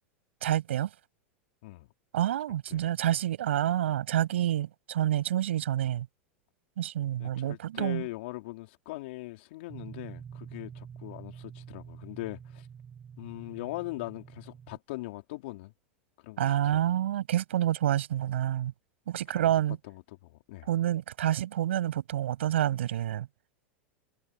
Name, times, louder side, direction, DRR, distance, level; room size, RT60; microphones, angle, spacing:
voice 1, 0.4-0.9 2.1-6.1 6.8-8.1 16.4-18.7 19.1-19.8 20.7-23.3, right 12 dB, 80° right, 7.9 m, -28 dB
voice 2, 7.2-12.7 13.2-15.7 16.2-16.8 19.4-19.5 19.9-20.7, left 20 dB, 65° left, 3.8 m, -41 dB
sound 1, 9.7-14.8, right 7 dB, 30° right, 5.7 m, -47 dB
hypercardioid pair, 100°, 6 cm